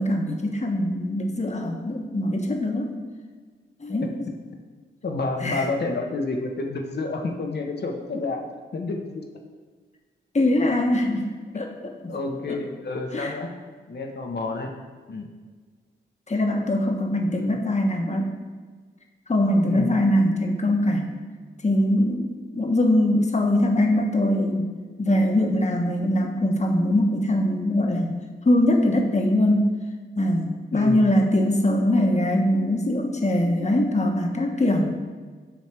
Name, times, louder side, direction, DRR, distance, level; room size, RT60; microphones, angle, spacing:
voice 1, 0.0-2.9 3.8-4.3 5.4-5.7 10.3-11.3 11.5-11.7 12.0-12.1 12.5-12.6 13.1-13.3 16.3-18.3 19.3-21.1 21.6-24.7 25.0-28.2 28.4-29.7 30.2-34.9, left 1 dB, 35° left, 2 dB, 1.3 m, -22 dB
voice 2, 5.0-9.2 12.1-13.6 13.9-14.7 15.1-15.3 17.4-17.5 19.6-20.0 30.7-31.1, left 3 dB, 55° left, 2 dB, 1.2 m, -29 dB
7.7 x 3.2 x 6.0 m, 1.5 s
supercardioid pair, 40°, 20 cm